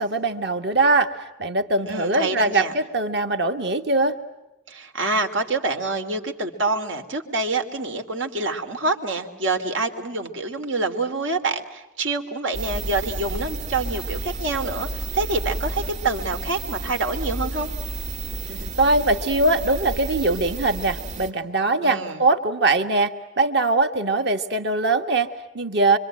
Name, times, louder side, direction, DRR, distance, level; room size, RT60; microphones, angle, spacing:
voice 1, 0.0-4.2 18.5-26.0, right 2 dB, 60° right, 6 dB, 1.9 m, -22 dB
voice 2, 1.9-2.7 4.7-17.7 21.8-22.2, right 3 dB, 85° right, 5 dB, 3.1 m, -26 dB
sound 1, 12.5-21.3, right 2 dB, 40° right, 3.0 m, -31 dB
26.0 x 25.5 x 9.0 m, 0.99 s
head